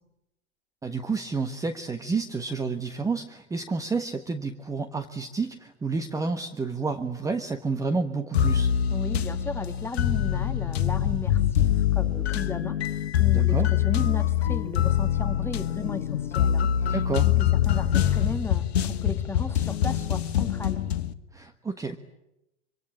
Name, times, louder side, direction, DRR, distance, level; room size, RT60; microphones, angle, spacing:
voice 1, 0.8-8.7 13.3-13.7 16.9-17.3 21.3-22.0, right 4 dB, 10° right, 8 dB, 1.4 m, -30 dB
sound 1, 8.3-21.1, left 10 dB, 60° left, 1.8 m, -24 dB
voice 2, 8.9-17.0 17.4-20.8, left 4 dB, 5° left, 8 dB, 1.9 m, -35 dB
26.0 x 25.5 x 8.8 m, 0.87 s
figure-of-eight pair, 105°, 36 cm